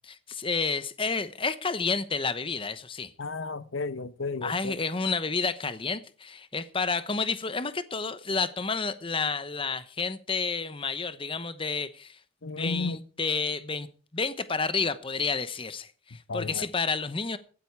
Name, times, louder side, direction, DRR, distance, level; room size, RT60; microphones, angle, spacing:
voice 1, 0.1-3.1 4.4-12.2 12.4-13.9 14.1-17.4, left 4 dB, 25° left, 1.0 m, -30 dB
voice 2, 3.2-4.8 12.4-13.0 16.3-16.7, left 3 dB, 80° left, 0.9 m, -33 dB
16.0 x 13.0 x 4.7 m
head